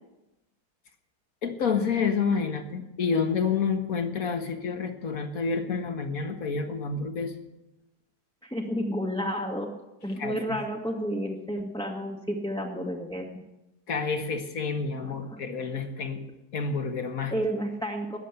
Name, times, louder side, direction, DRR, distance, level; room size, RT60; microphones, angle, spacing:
voice 1, 1.4-7.3 10.2-10.6 13.9-16.2 16.5-17.3, left 5 dB, 55° left, 5 dB, 2.0 m, -29 dB
voice 2, 8.4-9.7 10.0-13.4 15.0-15.4 17.3-18.2, equal, ahead, -2 dB, 1.5 m, -31 dB
20.5 x 7.5 x 8.3 m, 0.96 s
omnidirectional pair, 1.8 m